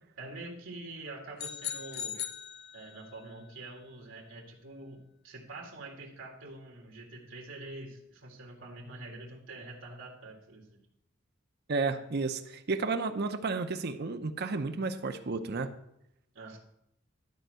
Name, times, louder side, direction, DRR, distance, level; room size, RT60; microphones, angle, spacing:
voice 1, 0.2-2.2 2.7-10.8 16.3-16.6, right 2 dB, 70° right, -1 dB, 1.9 m, -45 dB
sound 1, 1.4-3.2, left 9 dB, 55° left, 0.7 m, -39 dB
voice 2, 11.7-15.7, right 3 dB, 55° right, 9 dB, 0.7 m, -32 dB
12.0 x 4.5 x 6.4 m, 0.78 s
head